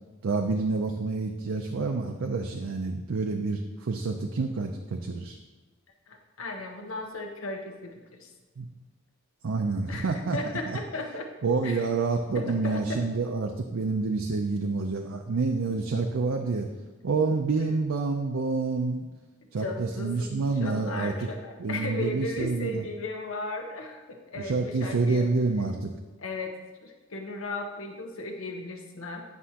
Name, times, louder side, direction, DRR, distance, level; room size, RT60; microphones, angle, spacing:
voice 1, 0.2-5.4 8.6-8.7 9.4-10.4 10.7-10.8 11.4-16.7 17.0-19.1 19.5-21.3 21.6-22.9 24.4-25.9, right 3 dB, 75° right, 3 dB, 0.5 m, -28 dB
voice 2, 6.1-8.3 9.9-11.3 11.6-11.8 12.3-13.1 17.6-17.7 19.6-20.3 20.6-25.3 26.2-29.2, left 2 dB, 85° left, 3 dB, 1.1 m, -36 dB
9.6 x 6.1 x 2.8 m, 1.2 s
head